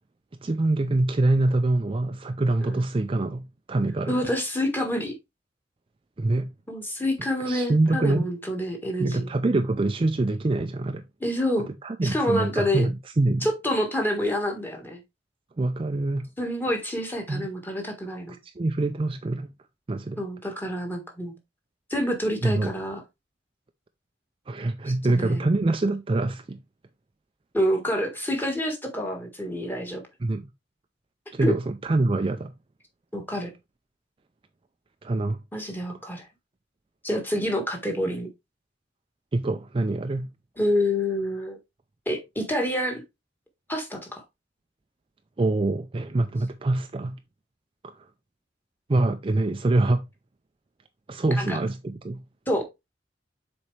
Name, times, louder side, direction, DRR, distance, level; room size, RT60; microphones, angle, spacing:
voice 1, 0.4-4.2 6.2-6.5 7.4-8.2 9.0-11.0 11.8-13.5 15.6-16.3 17.3-17.4 18.4-19.5 19.9-20.2 22.4-22.7 24.5-26.6 30.2-30.4 31.3-32.5 35.0-35.4 35.9-36.0 39.3-40.3 45.4-47.2 47.8-48.1 48.9-50.0 51.1-52.2, right 2 dB, 30° right, 0.4 m, -25 dB
voice 2, 4.1-5.2 6.7-9.3 11.2-11.7 12.0-12.9 13.4-15.0 16.4-18.4 20.2-21.3 21.9-23.0 25.1-25.5 27.5-30.0 31.4-31.6 33.1-33.5 35.5-36.3 37.0-38.3 40.6-41.6 42.0-43.0 43.7-44.2 51.4-51.6 52.5-52.6, equal, 10° left, 1.6 m, -27 dB
7.0 x 4.3 x 3.2 m
head